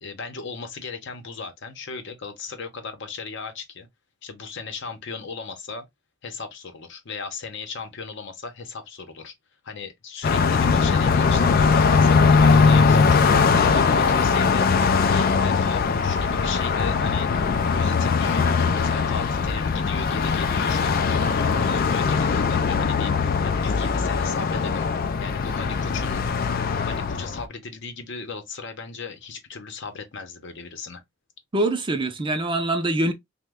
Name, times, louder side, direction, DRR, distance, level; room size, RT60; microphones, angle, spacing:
voice 1, 0.0-3.9 4.2-5.9 6.2-9.3 9.6-24.9 25.2-26.2 26.9-31.0, left 4 dB, 65° left, 0.8 m, -36 dB
Car passing by, 10.2-27.4, left 5 dB, 45° left, 0.4 m, -20 dB
voice 2, 31.5-33.1, right 2 dB, 25° right, 0.5 m, -24 dB
3.0 x 2.2 x 3.4 m
head